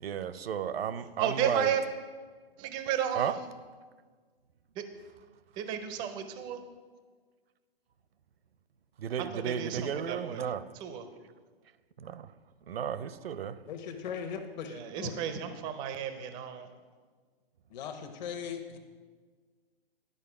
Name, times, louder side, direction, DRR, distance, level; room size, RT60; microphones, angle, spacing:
voice 1, 0.0-1.7 3.1-3.4 9.0-10.6 12.0-12.3 12.7-13.6, right 8 dB, 75° right, 0.6 m, -33 dB
voice 2, 1.2-1.8 2.6-3.4 5.6-6.6 9.3-10.5 10.8-11.0 14.7-16.7, right 9 dB, 15° right, 0.4 m, -33 dB
voice 3, 13.7-15.1 17.7-18.8, left 7 dB, 45° left, 1.1 m, -39 dB
11.0 x 4.8 x 4.8 m
hypercardioid pair, 130°, 30 cm